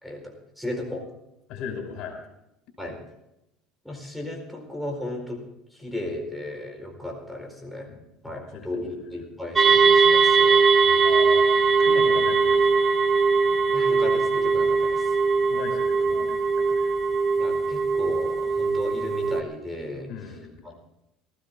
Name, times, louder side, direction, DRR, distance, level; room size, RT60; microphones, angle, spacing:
voice 1, 0.0-1.1 2.8-3.0 3.8-5.5 5.7-7.9 8.2-11.1 13.7-15.1 17.4-20.4 20.6-20.7, left 1 dB, ahead, 0 dB, 4.3 m, -35 dB
voice 2, 1.5-2.2 7.9-8.0 8.3-9.0 11.0-11.5 11.8-12.9 15.5-17.0 20.1-20.6, left 6 dB, 65° left, 4 dB, 5.2 m, -37 dB
sound 1, 9.6-19.4, right 4 dB, 20° right, 1.0 m, -20 dB
19.0 x 15.5 x 3.6 m, 0.84 s
cardioid pair, 125°, 0 cm